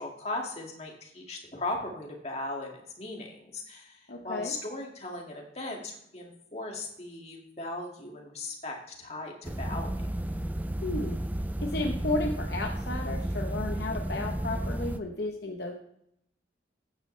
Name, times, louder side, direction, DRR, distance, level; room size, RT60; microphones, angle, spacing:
voice 1, 0.0-9.9, left 2 dB, 35° left, 0 dB, 2.2 m, -38 dB
voice 2, 4.1-4.6 10.8-11.2 11.6-15.7, left 2 dB, 60° left, 2 dB, 1.0 m, -33 dB
sound 1, 9.4-15.0, right 1 dB, 10° right, 0.3 m, -32 dB
14.5 x 9.5 x 3.3 m, 0.76 s
head